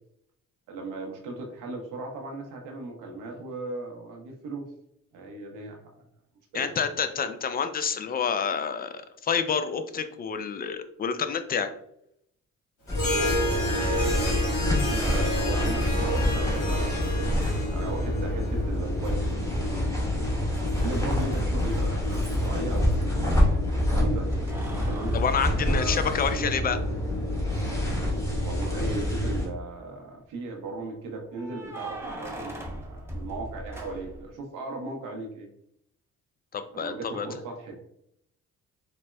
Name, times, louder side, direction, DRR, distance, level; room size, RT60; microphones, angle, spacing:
voice 1, 0.7-4.7 5.1-6.0 6.5-6.7 14.6-19.5 20.2-20.4 20.8-24.3 24.9-25.1 25.5-26.0 26.3-26.8 28.4-35.5 36.7-37.8, right 2 dB, 90° right, 2 dB, 0.8 m, -37 dB
voice 2, 6.5-11.7 25.1-26.8 36.5-37.4, left 6 dB, 30° left, 10 dB, 0.4 m, -28 dB
Harp, 12.9-18.6, equal, 70° left, 1.3 m, -30 dB
sound 1, 12.9-29.5, left 1 dB, 10° left, 1.1 m, -26 dB
Keys jangling, 19.0-19.6 19.9-23.1 24.3-26.4 26.9-27.0 28.8-29.4 31.3-34.3, right 1 dB, 10° right, 0.8 m, -41 dB
4.0 x 2.0 x 2.2 m, 0.74 s
cardioid pair, 70°, 31 cm